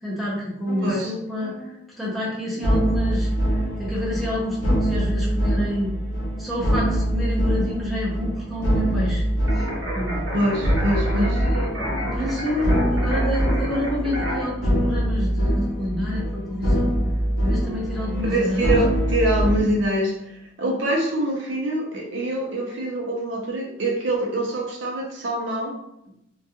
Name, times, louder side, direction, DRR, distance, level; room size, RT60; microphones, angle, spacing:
voice 1, 0.0-3.3 3.5-5.9 6.4-9.2 9.5-9.7 9.9-10.2 11.0-16.9 17.4-18.8, left 1 dB, ahead, -6 dB, 0.6 m, -28 dB
sound 1, 0.7-1.0 1.4-1.7 2.6-19.6, equal, 85° left, 0.8 m, -24 dB
sound 2, 9.5-14.4, equal, 90° right, 0.9 m, -30 dB
voice 2, 10.3-11.4 18.2-20.1 20.6-25.8, right 1 dB, 65° right, -1 dB, 0.6 m, -24 dB
2.3 x 2.2 x 2.8 m, 0.80 s
head